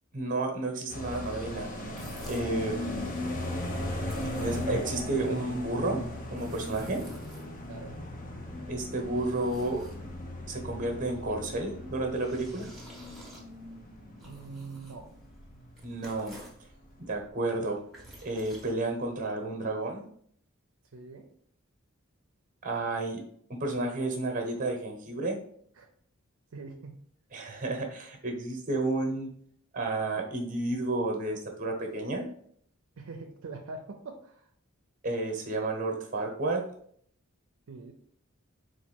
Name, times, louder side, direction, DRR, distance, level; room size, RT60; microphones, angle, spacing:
voice 1, 0.1-3.1 4.4-6.0 6.3-7.0 8.7-9.8 10.5-12.7 15.8-16.4 17.0-17.8 18.2-20.1 22.6-23.2 23.5-25.4 27.3-29.3 29.7-32.3 35.0-36.7, right 2 dB, 40° right, 3 dB, 1.0 m, -31 dB
sound 1, 0.9-16.0 16.3-16.4 16.7-17.3, left 1 dB, 40° left, 0.7 m, -38 dB
sound 2, 1.9-2.6 3.9-5.0 6.0-7.8 8.5-10.4 11.8-16.7 17.6-19.3, right 1 dB, ahead, 1.0 m, -52 dB
voice 2, 6.9-7.2 7.7-8.0 14.2-15.1 20.9-21.3 25.8-25.9 26.5-27.0 33.0-34.5 37.7-37.9, right 3 dB, 70° right, 3 dB, 0.5 m, -43 dB
4.1 x 2.6 x 4.4 m, 0.62 s
head